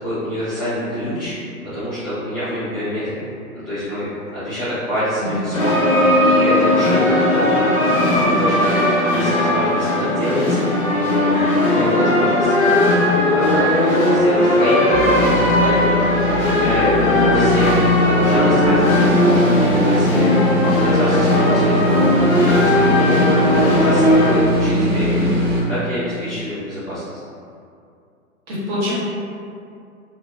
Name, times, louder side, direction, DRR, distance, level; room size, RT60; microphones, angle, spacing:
voice 1, 0.0-1.3 1.7-3.2 3.5-4.0 4.3-7.5 7.7-10.6 10.9-16.1 16.5-17.7 18.0-25.4 25.7-27.0, equal, 15° left, -16 dB, 0.4 m, -26 dB
voice 2, 5.2-5.6 28.5-28.9, left 1 dB, 45° right, -9 dB, 1.4 m, -25 dB
sound 1, 5.5-24.3, left 1 dB, 40° left, 1.0 m, -17 dB
sound 2, 14.9-25.6, equal, 75° right, 1.3 m, -20 dB
3.1 x 2.4 x 2.4 m, 2.4 s
figure-of-eight pair, 120°, 43 cm